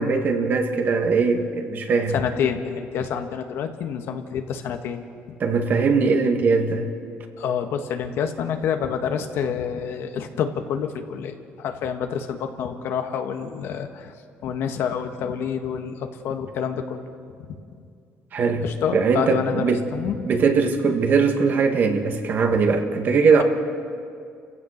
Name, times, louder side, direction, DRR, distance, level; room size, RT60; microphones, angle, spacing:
voice 1, 0.0-2.1 5.4-6.9 18.3-18.6 18.9-19.8 20.2-23.4, right 4 dB, 45° right, 5 dB, 1.9 m, -20 dB
voice 2, 2.1-5.0 5.3-5.4 7.4-14.1 14.4-17.0 18.6-20.2, left 7 dB, 70° left, 6 dB, 1.6 m, -28 dB
29.0 x 15.5 x 6.6 m, 2.4 s
cardioid pair, 125°, 4 cm